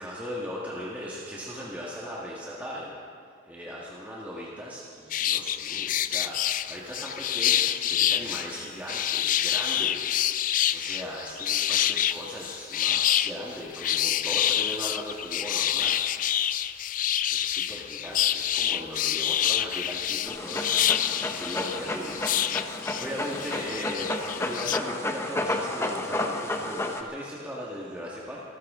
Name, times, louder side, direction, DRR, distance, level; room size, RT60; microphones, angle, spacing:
voice 1, 0.0-3.0 3.4-10.4 10.7-16.0 17.3-24.1 24.4-28.4, equal, 10° right, -6 dB, 1.6 m, -38 dB
sound 1, 5.1-24.8, left 11 dB, 40° left, 0.3 m, -27 dB
Dog, 20.3-27.0, left 1 dB, 15° left, 0.9 m, -32 dB
27.0 x 13.5 x 3.7 m, 2.3 s
head